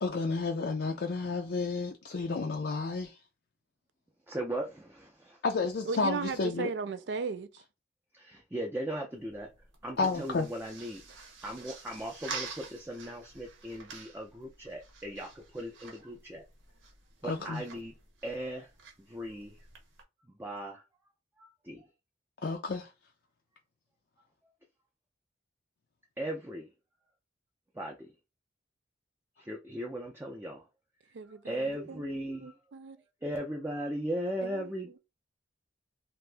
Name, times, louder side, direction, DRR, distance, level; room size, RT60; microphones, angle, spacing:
voice 1, 0.0-3.2 5.4-6.7 10.0-10.5 17.2-17.6 22.4-22.9, left 4 dB, 60° left, 0.4 m, -31 dB
voice 2, 4.3-5.4 8.1-9.5 9.8-16.4 17.2-17.9 18.2-18.7 19.0-19.6 20.3-20.8 21.4-21.9 26.2-26.7 27.7-28.1 29.4-30.6 31.4-32.5 33.2-35.0, right 1 dB, 10° right, 0.5 m, -38 dB
voice 3, 5.9-7.6 31.1-32.1 32.4-33.0 34.4-34.6, right 4 dB, 65° right, 0.4 m, -36 dB
sound 1, 9.1-20.0, right 4 dB, 90° right, 1.0 m, -48 dB
2.8 x 2.5 x 3.4 m
head